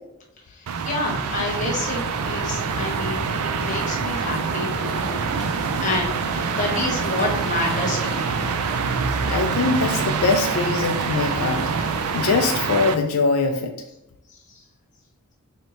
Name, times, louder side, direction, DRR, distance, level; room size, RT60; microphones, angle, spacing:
voice 1, 0.5-2.0 2.3-8.5 14.3-14.4, left 2 dB, 35° left, -2 dB, 1.0 m, -29 dB
sound 1, 0.7-12.9, right 5 dB, 85° right, 0.4 m, -25 dB
Crow, 1.1-12.5, left 1 dB, ahead, 1.1 m, -37 dB
voice 2, 9.3-11.7 12.1-13.8, left 4 dB, 80° left, 4 dB, 0.4 m, -22 dB
3.3 x 2.7 x 4.3 m, 0.89 s
head